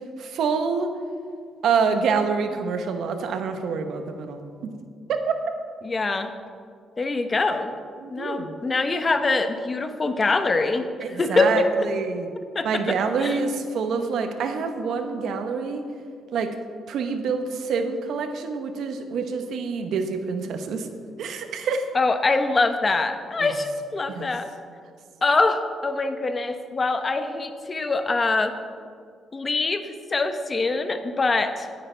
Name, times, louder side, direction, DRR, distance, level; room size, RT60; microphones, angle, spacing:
voice 1, 0.2-0.9 1.6-4.7 5.1-5.3 8.0-8.5 11.0-11.6 11.9-12.3 12.6-15.9 16.3-16.5 16.9-20.9 21.2-21.8 23.4-23.5 24.1-24.3, right 5 dB, 75° right, 6 dB, 1.0 m, -26 dB
voice 2, 5.8-6.3 7.0-7.7 8.1-11.7 12.5-13.4 21.9-24.5 25.2-28.5 29.3-31.8, left 3 dB, 30° left, 8 dB, 0.9 m, -24 dB
16.5 x 9.5 x 3.4 m, 2.2 s
cardioid pair, 90°, 0 cm